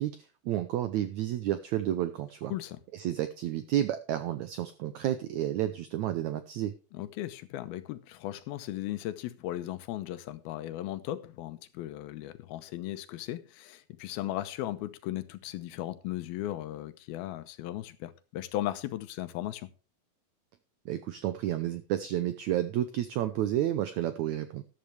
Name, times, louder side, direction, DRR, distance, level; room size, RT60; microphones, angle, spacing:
voice 1, 0.0-2.5 2.9-6.7 20.8-24.6, right 12 dB, 85° right, 1.6 m, -31 dB
voice 2, 6.9-19.7, left 14 dB, 90° left, 2.8 m, -37 dB
13.5 x 11.5 x 3.3 m
omnidirectional pair, 4.2 m